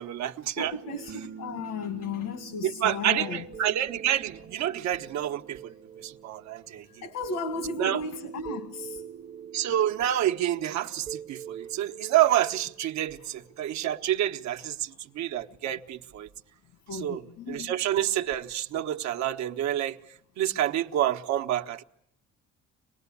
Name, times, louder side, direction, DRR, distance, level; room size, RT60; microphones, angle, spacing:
voice 1, 0.0-0.7 2.6-5.7 6.0-6.9 7.8-8.0 9.5-16.3 16.9-17.2 17.5-20.0 20.4-21.8, right 12 dB, 70° right, 1.1 m, -28 dB
voice 2, 0.6-3.5 6.7-9.0 13.2-13.3 14.6-14.7 16.9-17.7, left 4 dB, 75° left, 2.0 m, -35 dB
sound 1, 0.8-14.0 18.3-18.5, right 7 dB, 30° right, 0.9 m, -45 dB
25.5 x 19.5 x 8.5 m
cardioid pair, 155°, 29 cm